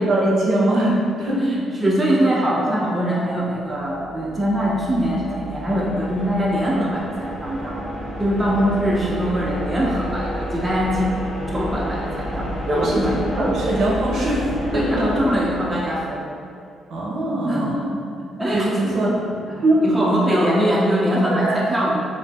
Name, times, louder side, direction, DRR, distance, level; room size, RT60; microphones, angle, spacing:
voice 1, 0.1-1.4 12.7-14.4 14.7-15.2 16.9-17.7 18.5-19.3 19.6-19.8 20.3-20.5 21.3-21.7, right 1 dB, 65° right, -5 dB, 0.6 m, -21 dB
voice 2, 1.4-7.9 8.2-11.1 11.5-13.4 14.7-16.2 17.5-19.1 19.5-22.0, equal, 15° right, -4 dB, 0.3 m, -22 dB
sound 1, 3.6-16.4, equal, 35° left, 1.4 m, -30 dB
2.5 x 2.4 x 2.2 m, 2.5 s
cardioid pair, 90°, 0 cm